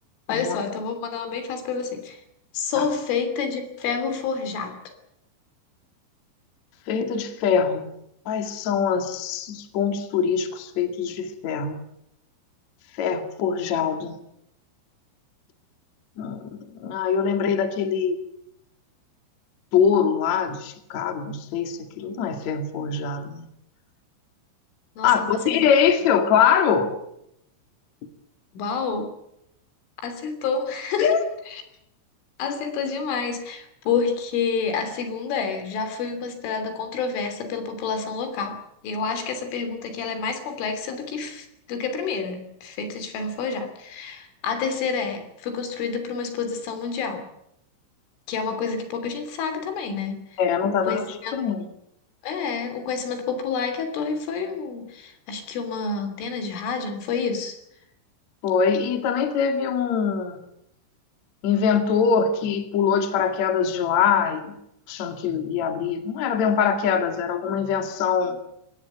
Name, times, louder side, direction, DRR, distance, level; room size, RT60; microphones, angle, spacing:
voice 1, 0.3-2.2 2.5-4.8 25.0-25.7 28.5-29.1 30.0-31.6 32.4-47.3 48.3-51.3 52.2-57.6, left 5 dB, 80° left, 8 dB, 5.5 m, -29 dB
voice 2, 6.9-7.9 8.3-11.8 12.9-14.2 16.2-18.2 19.7-23.5 25.0-26.9 31.0-31.2 50.4-51.6 58.4-60.4 61.4-64.6 64.9-68.4, left 7 dB, 45° left, 6 dB, 2.7 m, -23 dB
23.5 x 18.0 x 8.2 m, 0.80 s
omnidirectional pair, 5.5 m